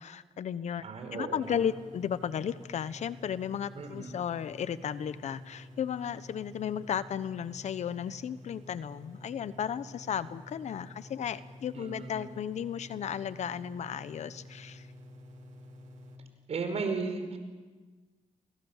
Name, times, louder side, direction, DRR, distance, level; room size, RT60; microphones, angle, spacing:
voice 1, 0.0-0.8 1.1-14.9, left 8 dB, 70° left, 14 dB, 1.1 m, -34 dB
voice 2, 0.8-1.6 3.7-4.1 11.7-12.2 16.5-17.4, right 4 dB, 60° right, 7 dB, 5.2 m, -35 dB
sound 1, 1.4-16.2, left 1 dB, 80° right, 3.4 m, -50 dB
29.5 x 23.5 x 7.4 m, 1.3 s
cardioid pair, 85°, 12 cm